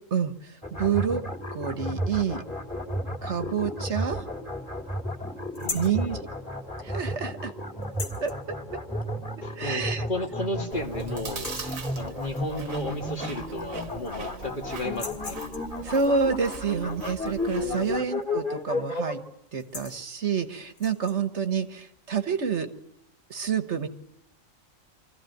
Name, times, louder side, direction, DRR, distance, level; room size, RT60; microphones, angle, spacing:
voice 1, 0.1-1.2 1.5-2.4 3.2-4.2 5.7-6.2 6.8-7.5 8.2-8.3 9.5-10.0 15.8-19.2 19.5-22.7 23.3-23.9, right 6 dB, 60° right, 10 dB, 1.6 m, -28 dB
sound 1, 0.6-19.1, left 1 dB, 5° left, 2.8 m, -33 dB
sound 2, 5.5-6.0 7.8-8.4 9.7-9.8 10.3-10.4 10.8-11.0 11.3-11.8 13.2-13.3 13.6-14.3 14.9-15.8 18.1-18.4 18.7-19.0 19.5-20.0 20.7-21.2, left 4 dB, 85° left, 2.7 m, -39 dB
voice 2, 5.5-6.2 9.4-15.4 17.2-18.0, left 1 dB, 40° left, 4 dB, 1.9 m, -34 dB
Chewing mastication, 10.7-18.0, right 5 dB, 85° right, 1.7 m, -42 dB
25.5 x 15.0 x 9.2 m, 0.79 s
omnidirectional pair, 1.4 m